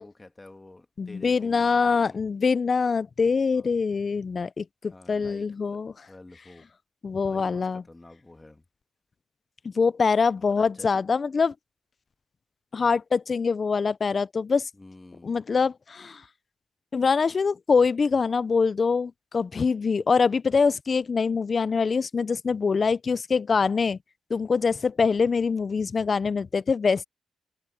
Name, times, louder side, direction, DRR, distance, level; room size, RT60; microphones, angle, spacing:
voice 1, 0.0-2.2 3.5-3.7 4.9-5.8 6.1-6.7 7.2-8.6 10.4-11.0 14.7-15.4, left 2 dB, 15° left, 1.7 m, -48 dB
voice 2, 1.0-5.9 7.0-7.8 9.6-11.5 12.7-14.7 15.2-16.2 16.9-24.0 24.3-27.0, left 5 dB, 30° left, 0.3 m, -24 dB
wide cardioid pair, 165°, 0 cm